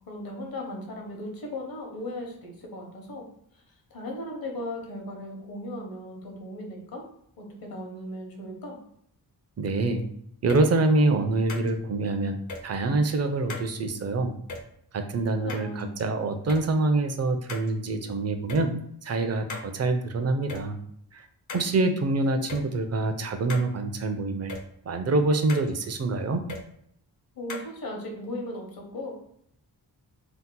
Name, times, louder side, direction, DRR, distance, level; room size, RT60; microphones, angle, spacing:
voice 1, 0.1-3.3 3.9-7.0 7.4-8.8 15.4-15.9 27.3-29.1, left 1 dB, 65° left, 1 dB, 0.9 m, -37 dB
voice 2, 9.6-10.0 10.4-12.4 12.6-14.3 14.9-18.7 19.0-20.8 21.1-21.2 21.5-24.5 24.8-26.4, right 2 dB, 45° right, 7 dB, 0.5 m, -25 dB
sound 1, 10.5-10.6 11.5-11.7 12.5-12.6 13.5-13.7 14.5-14.6 15.5-16.0 16.5-16.6 17.5-17.7 18.5-18.6 19.5-19.7 20.5-20.6 21.5-21.7 22.5-22.6 23.5-23.7 24.5-24.6 25.5-25.7 26.5-26.6 27.5-27.7, left 3 dB, 50° left, 0.6 m, -37 dB
2.8 x 2.0 x 3.7 m, 0.69 s
cardioid pair, 75°, 38 cm